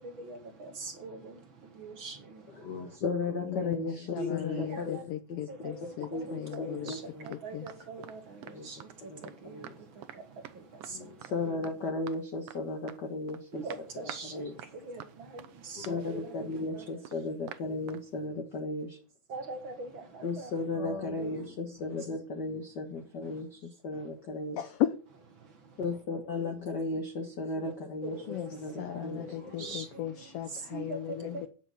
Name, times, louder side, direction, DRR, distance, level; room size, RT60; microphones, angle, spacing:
voice 1, 0.0-3.0 4.2-5.0 5.5-11.6 13.5-16.8 19.3-20.6 21.2-21.5 23.2-23.4 23.9-24.0 25.4-25.8 27.6-27.7 28.0-30.0 30.5-31.5, right 3 dB, 50° right, 1.9 m, -43 dB
voice 2, 2.5-5.1 6.1-7.3 8.4-8.7 9.0-9.8 10.9-13.6 14.2-14.5 15.8-19.0 20.2-24.6 25.8-28.3 28.5-29.8, left 3 dB, 45° left, 1.6 m, -35 dB
voice 3, 3.4-6.9 7.3-7.9 24.6-25.0 28.3-31.5, left 12 dB, 75° left, 1.4 m, -36 dB
sound 1, 6.5-7.0 7.3-7.4 7.7-8.2 8.4-9.4 9.6-9.8 10.0-10.2 10.4-10.9 11.2-11.3 11.6-12.2 12.5-12.6 12.9-13.4 13.7-14.3 14.6-18.0, right 12 dB, 70° right, 1.7 m, -47 dB
9.7 x 7.0 x 9.0 m
omnidirectional pair, 3.4 m